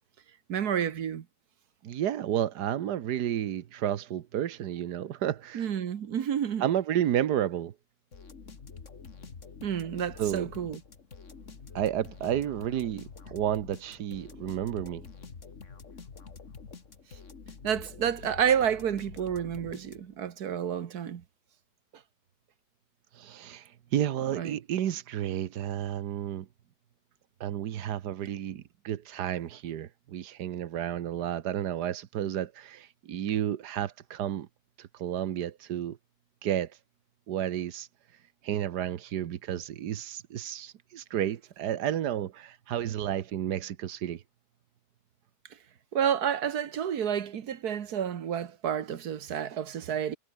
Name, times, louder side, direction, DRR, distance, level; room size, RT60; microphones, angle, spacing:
voice 1, 0.5-1.2 5.5-6.6 9.6-10.8 17.6-21.2 24.4-24.6 45.9-50.2, right 8 dB, 70° right, 1.7 m, -30 dB
voice 2, 1.8-5.7 6.6-7.7 10.2-10.5 11.8-15.0 23.1-26.5 27.4-34.5 34.8-36.0 36.4-36.7 37.3-37.9 38.4-44.2, right 10 dB, 90° right, 1.6 m, -31 dB
sound 1, 8.1-20.3, left 5 dB, 50° left, 2.2 m, -47 dB
omnidirectional pair, 1.7 m